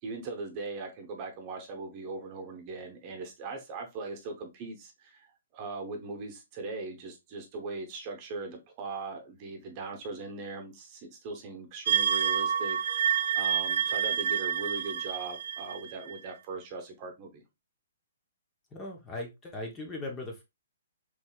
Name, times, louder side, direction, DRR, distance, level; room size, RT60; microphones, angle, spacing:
voice 1, 0.0-5.3 5.5-17.4, right 3 dB, 30° right, 1.0 m, -40 dB
sound 1, 11.9-16.3, right 9 dB, 60° right, 0.3 m, -28 dB
voice 2, 18.7-20.4, left 2 dB, 15° left, 0.9 m, -39 dB
4.0 x 3.2 x 2.3 m
hypercardioid pair, 155°, 0 cm